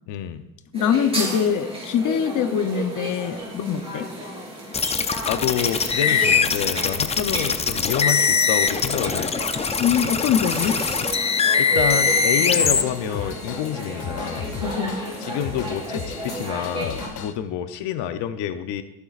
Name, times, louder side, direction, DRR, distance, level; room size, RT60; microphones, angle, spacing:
voice 1, 0.1-0.4 5.3-9.3 11.6-14.5 15.2-18.8, left 10 dB, 80° left, 9 dB, 0.8 m, -28 dB
voice 2, 0.7-4.1 9.8-10.8 14.6-15.0, left 8 dB, 50° left, 9 dB, 0.8 m, -23 dB
sound 1, 0.7-17.1, right 2 dB, 15° right, 3.7 m, -33 dB
sound 2, 4.7-12.8, left 5 dB, 15° left, 0.4 m, -22 dB
Drum kit / Drum, 11.7-17.3, left 6 dB, 65° left, 1.2 m, -36 dB
22.5 x 8.4 x 2.5 m, 0.93 s
cardioid pair, 140°, 42 cm